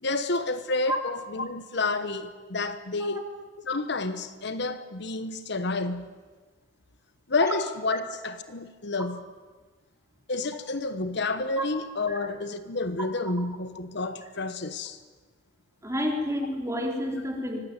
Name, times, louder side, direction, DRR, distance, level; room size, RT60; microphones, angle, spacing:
voice 1, 0.0-3.2 3.6-6.1 7.3-9.2 10.3-15.0, left 3 dB, 60° left, 1.2 m, -30 dB
voice 2, 15.8-17.6, equal, 15° right, 4.1 m, -29 dB
25.0 x 18.5 x 9.2 m
head